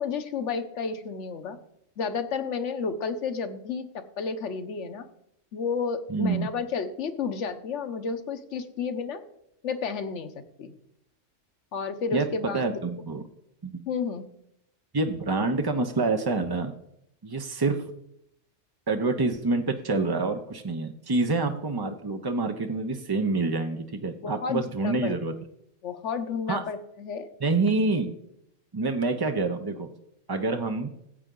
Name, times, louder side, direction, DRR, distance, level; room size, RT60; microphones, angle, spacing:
voice 1, 0.0-1.6 2.0-5.1 5.5-9.2 9.6-10.3 10.6-10.7 11.7-12.8 13.9-14.3 24.2-25.1 25.8-27.3, left 5 dB, 65° left, 10 dB, 1.2 m, -31 dB
voice 2, 6.1-6.5 12.1-13.2 13.6-13.8 14.9-16.7 17.2-17.9 18.9-25.3 26.5-26.6 27.4-28.1 28.7-29.9 30.3-30.9, right 3 dB, 30° right, 5 dB, 0.4 m, -27 dB
14.5 x 8.2 x 3.8 m, 0.77 s
omnidirectional pair, 1.4 m